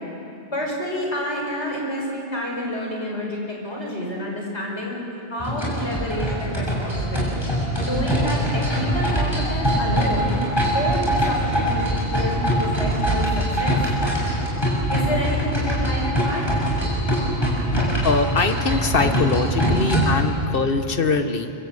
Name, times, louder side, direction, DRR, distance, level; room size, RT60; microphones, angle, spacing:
voice 1, 0.5-5.0 5.3-7.4 7.8-10.3 10.7-13.3 13.6-13.8 14.9-16.4, left 1 dB, 75° left, -1 dB, 5.7 m, -29 dB
sound 1, 5.4-20.2, equal, 20° left, 6.3 m, -23 dB
voice 2, 18.0-21.5, left 4 dB, 55° left, 8 dB, 1.5 m, -22 dB
25.5 x 24.0 x 8.1 m, 2.8 s
omnidirectional pair, 1.2 m